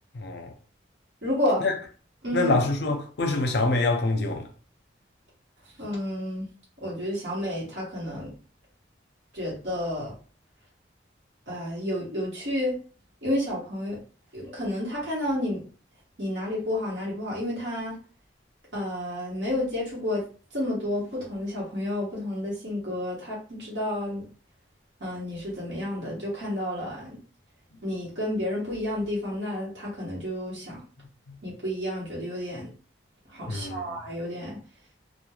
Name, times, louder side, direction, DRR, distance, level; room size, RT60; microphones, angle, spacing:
voice 1, 0.1-0.5 1.6-1.7 2.3-4.5 31.3-31.4 33.5-34.0, left 2 dB, 60° left, 0.5 m, -25 dB
voice 2, 1.2-1.6 2.2-2.6 5.8-6.5 6.8-8.3 9.3-10.1 11.5-12.8 13.2-14.0 14.3-15.6 16.2-18.0 18.7-20.2 20.5-24.2 25.0-27.2 27.8-30.8 31.4-32.7 33.3-34.6, left 1 dB, 65° right, 1.0 m, -30 dB
3.0 x 2.2 x 2.3 m
head